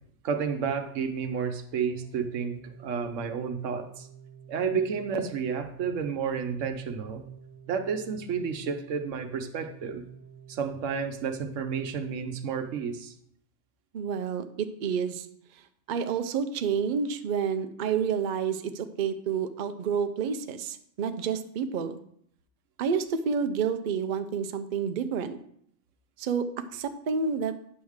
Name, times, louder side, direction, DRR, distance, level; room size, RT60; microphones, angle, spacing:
voice 1, 0.2-4.1 4.5-7.2 7.7-10.0 10.5-13.1, right 6 dB, 85° right, 8 dB, 1.1 m, -31 dB
Organ, 1.8-12.7, right 7 dB, 15° right, 0.6 m, -50 dB
voice 2, 13.9-15.3 15.9-22.0 22.8-25.4 26.2-27.5, right 6 dB, 55° right, 9 dB, 0.6 m, -29 dB
9.4 x 3.5 x 6.3 m, 0.67 s
omnidirectional pair, 1.3 m